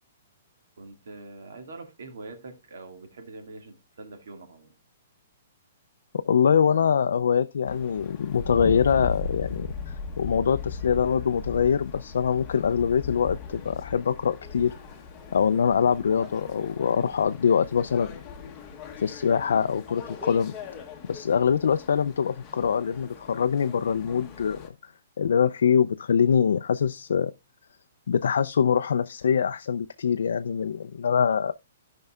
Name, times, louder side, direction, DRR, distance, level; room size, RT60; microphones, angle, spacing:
voice 1, 0.8-4.7, right 3 dB, 70° right, 1.9 m, -44 dB
voice 2, 6.1-14.7 15.3-18.2 19.0-20.5 21.1-24.9 25.2-27.3 28.1-31.5, left 7 dB, 75° left, 0.4 m, -24 dB
sound 1, 7.7-24.7, left 5 dB, 15° left, 0.9 m, -39 dB
15.5 x 5.3 x 2.3 m
hypercardioid pair, 175°, 0 cm